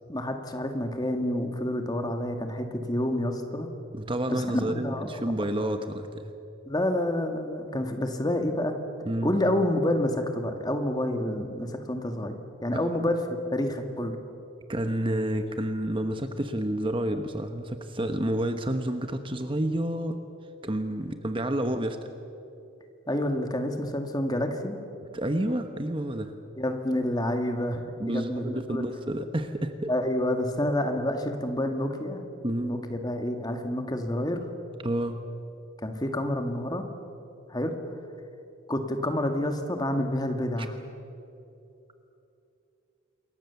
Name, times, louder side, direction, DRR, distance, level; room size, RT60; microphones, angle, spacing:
voice 1, 0.1-3.7 4.3-5.2 5.6-5.7 6.6-8.7 9.2-13.2 13.5-14.1 23.1-24.8 26.6-28.8 29.9-32.2 32.6-34.4 35.8-36.9 37.5-37.8 38.7-40.8, left 1 dB, 20° left, 5 dB, 2.0 m, -28 dB
voice 2, 3.9-6.3 9.1-9.3 12.9-13.1 14.7-20.2 20.6-22.0 25.1-26.3 28.0-29.9 32.4-32.7 34.8-35.2 40.6-40.7, right 1 dB, 25° right, 7 dB, 1.1 m, -29 dB
27.5 x 22.5 x 7.1 m, 2.8 s
head